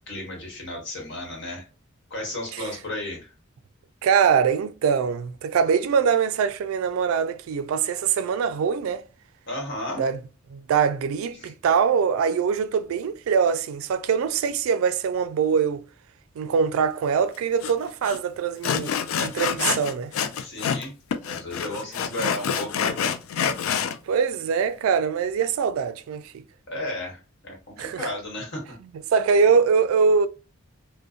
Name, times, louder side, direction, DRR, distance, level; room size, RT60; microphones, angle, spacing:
voice 1, 0.1-1.7 2.1-3.3 9.5-10.1 11.4-11.5 20.4-20.9 21.2-23.0 26.7-28.8, left 1 dB, 60° left, 1.2 m, -34 dB
voice 2, 4.0-9.0 10.0-10.2 10.5-15.8 16.4-20.1 24.1-26.4 27.8-28.1 29.1-30.3, right 6 dB, 85° right, 0.3 m, -23 dB
Sawing, 17.6-17.7 18.0-18.2 18.6-20.9 21.1-24.0, left 7 dB, 90° left, 0.3 m, -27 dB
2.6 x 2.1 x 2.4 m
head